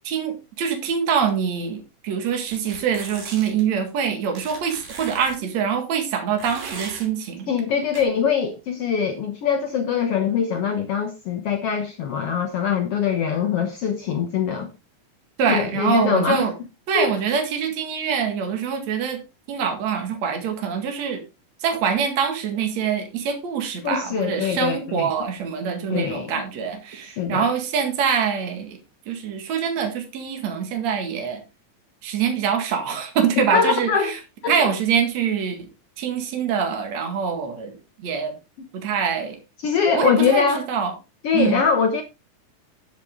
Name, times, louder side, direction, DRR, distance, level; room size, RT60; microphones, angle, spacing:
voice 1, 0.0-7.5 15.4-16.5 16.9-19.2 19.5-21.2 21.6-28.8 29.1-31.4 32.0-34.2 34.5-35.7 36.0-37.8 38.0-38.3 38.7-39.4 39.9-40.9 41.3-41.6, right 7 dB, 55° right, 3.0 m, -24 dB
sound 1, 2.5-3.6 4.4-5.4 6.4-7.1 7.9-8.0, right 4 dB, 85° right, 4.8 m, -38 dB
voice 2, 7.5-14.7 15.5-16.5 16.9-17.1 23.8-25.1 25.9-26.3 27.2-27.5 33.5-34.1 34.4-34.6 39.6-40.7 41.2-42.0, left 7 dB, 70° left, 1.4 m, -23 dB
10.0 x 8.2 x 3.7 m
omnidirectional pair, 4.0 m